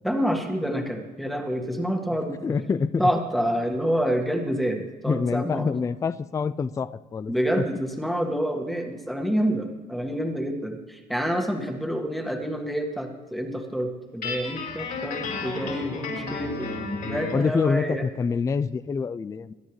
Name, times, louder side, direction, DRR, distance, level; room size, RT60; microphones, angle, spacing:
voice 1, 0.0-2.6 3.0-5.7 7.3-16.7 17.0-18.0, equal, ahead, 3 dB, 1.7 m, -27 dB
voice 2, 2.2-3.1 5.1-7.6 17.3-19.5, left 5 dB, 20° left, 16 dB, 0.3 m, -26 dB
Guitar, 14.2-17.5, left 3 dB, 60° left, 4.8 m, -32 dB
22.5 x 10.0 x 3.2 m, 1.4 s
cardioid pair, 110°, 17 cm